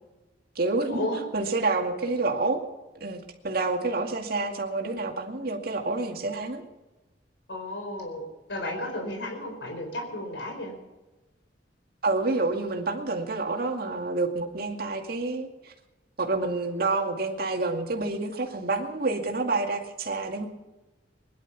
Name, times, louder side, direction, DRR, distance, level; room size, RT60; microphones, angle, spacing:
voice 1, 0.6-1.1 1.3-2.7 2.9-6.6 12.0-15.7 16.2-20.5, right 3 dB, 55° right, 3 dB, 2.2 m, -28 dB
voice 2, 7.5-8.2 8.5-10.7, left 1 dB, 70° left, 2 dB, 4.4 m, -33 dB
21.0 x 11.5 x 6.1 m, 1.1 s
head